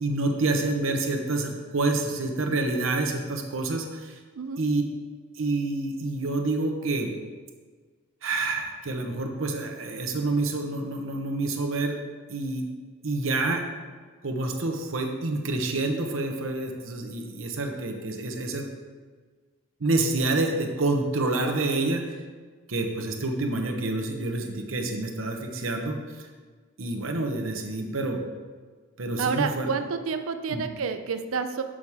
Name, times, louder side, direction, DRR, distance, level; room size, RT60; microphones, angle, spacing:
voice 1, 0.0-4.2 4.6-4.8 5.4-7.1 8.2-12.0 12.3-12.6 13.0-13.6 14.2-18.6 19.8-22.1 22.7-26.3 26.8-28.2 29.0-29.7 30.5-30.6, right 2 dB, 70° right, 3 dB, 0.9 m, -28 dB
voice 2, 29.2-31.6, right 5 dB, 85° right, 9 dB, 0.5 m, -29 dB
6.2 x 5.7 x 4.7 m, 1.5 s
head